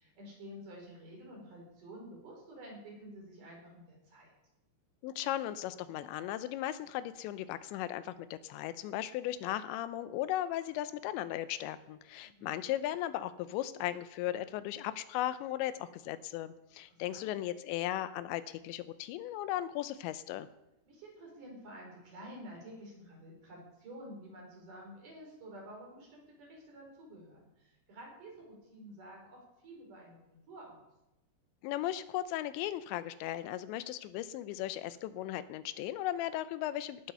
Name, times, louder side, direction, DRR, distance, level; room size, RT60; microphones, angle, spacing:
voice 1, 0.0-4.3 12.2-12.5 16.9-17.4 20.9-30.9, right 1 dB, 45° right, -1 dB, 5.9 m, -50 dB
voice 2, 5.0-20.5 31.6-37.1, left 13 dB, 90° left, 13 dB, 3.0 m, -37 dB
17.5 x 9.0 x 6.8 m, 0.90 s
omnidirectional pair, 5.1 m